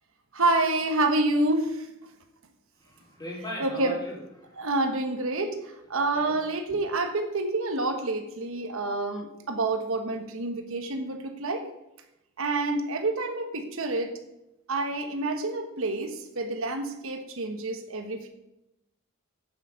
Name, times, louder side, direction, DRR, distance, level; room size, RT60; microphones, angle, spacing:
voice 1, 0.3-1.9 3.6-3.9 4.6-11.7 12.4-14.1 14.7-18.3, right 2 dB, 70° right, 6 dB, 1.3 m, -28 dB
voice 2, 2.8-4.7 6.1-6.4, equal, 20° left, -3 dB, 3.9 m, -39 dB
8.6 x 8.2 x 6.4 m, 0.88 s
head